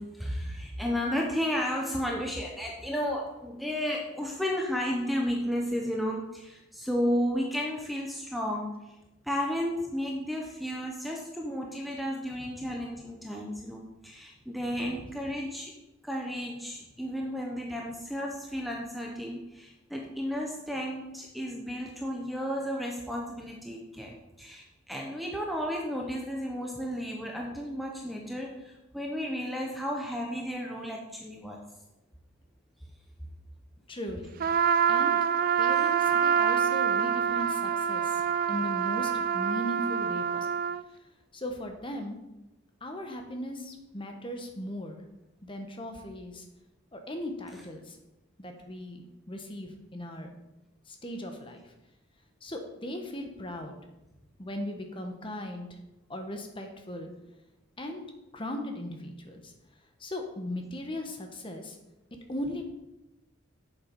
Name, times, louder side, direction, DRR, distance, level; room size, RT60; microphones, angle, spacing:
voice 1, 0.0-8.9 9.2-15.7 16.0-31.6 35.8-35.9, equal, ahead, -1 dB, 0.8 m, -33 dB
voice 2, 14.7-15.1 33.9-34.4 34.9-35.2 35.6-40.6 40.9-41.0 41.3-42.2 42.8-45.0 45.4-46.4 46.9-48.0 48.4-50.4 50.9-51.7 52.4-53.8 54.4-55.8 56.1-57.1 57.8-58.0 58.3-59.5 60.0-61.8 62.3-62.6, left 1 dB, 25° left, 4 dB, 1.2 m, -38 dB
Trumpet, 34.4-40.8, right 7 dB, 45° right, 0.3 m, -26 dB
8.0 x 7.1 x 5.3 m, 0.98 s
head